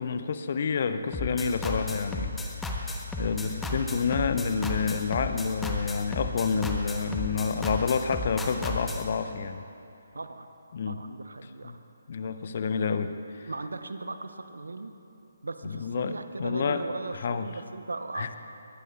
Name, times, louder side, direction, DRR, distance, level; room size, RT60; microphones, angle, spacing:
voice 1, 0.0-2.3 2.6-2.9 3.2-9.6 10.7-11.0 11.6-11.8 12.1-13.5 15.6-16.8 17.1-17.5 18.1-18.3, left 5 dB, 45° left, 10 dB, 0.7 m, -29 dB
sound 1, 1.1-9.0, left 1 dB, 5° left, 1.0 m, -33 dB
voice 2, 10.1-10.5 10.9-11.8 13.5-14.9 15.4-18.4, right 3 dB, 70° right, 9 dB, 0.9 m, -38 dB
21.5 x 19.0 x 2.4 m, 2.8 s
figure-of-eight pair, 140°, 0 cm